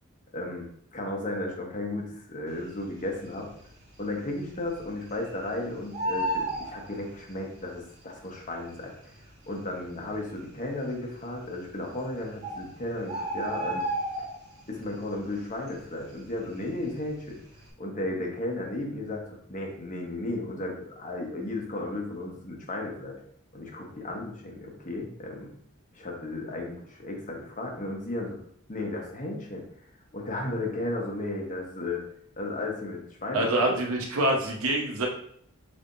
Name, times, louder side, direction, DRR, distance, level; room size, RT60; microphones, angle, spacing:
voice 1, 0.3-3.5 4.0-8.9 9.5-13.8 14.7-17.4 17.8-23.2 23.5-25.5 25.9-28.4 28.7-29.6 30.1-32.0 32.4-33.8, left 2 dB, 40° left, 0 dB, 1.0 m, -34 dB
Bird, 3.0-3.6 3.9-4.0 4.3-5.5 5.7-7.6 8.4-8.5 9.2-9.3 9.5-9.6 10.2-10.7 11.6-11.7 12.1-12.2 12.4-14.7 15.0-15.4 15.7-17.0 17.4-17.6, right 1 dB, 50° right, 1.2 m, -32 dB
voice 2, 33.3-35.1, right 1 dB, 80° right, 0 dB, 1.0 m, -25 dB
5.3 x 3.5 x 2.6 m, 0.65 s
head